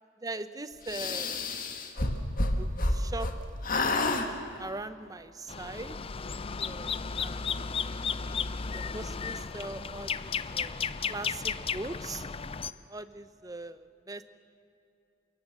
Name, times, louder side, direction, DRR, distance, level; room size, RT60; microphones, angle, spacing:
voice 1, 0.2-1.4 2.6-3.3 4.6-6.0 6.6-6.9 7.2-7.8 8.7-12.3 12.9-14.2, right 2 dB, 20° right, 12 dB, 0.8 m, -41 dB
sound 1, 0.9-3.4 3.6-4.3, left 2 dB, 50° left, 1.9 m, -29 dB
sound 2, 5.5-12.7, left 6 dB, 30° left, 0.5 m, -34 dB
29.0 x 17.5 x 7.5 m, 2.7 s
head